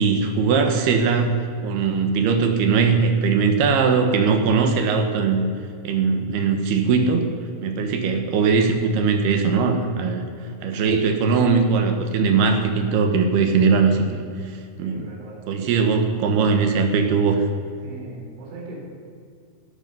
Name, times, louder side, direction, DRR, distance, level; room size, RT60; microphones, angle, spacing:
voice 1, 0.0-1.3 1.6-5.5 5.8-7.3 7.6-10.2 10.6-15.1 15.5-17.5, right 5 dB, 65° right, 5 dB, 2.9 m, -20 dB
voice 2, 14.8-15.8 17.8-18.8, right 2 dB, 85° right, -2 dB, 6.2 m, -40 dB
17.5 x 13.5 x 5.6 m, 2.3 s
omnidirectional pair, 5.5 m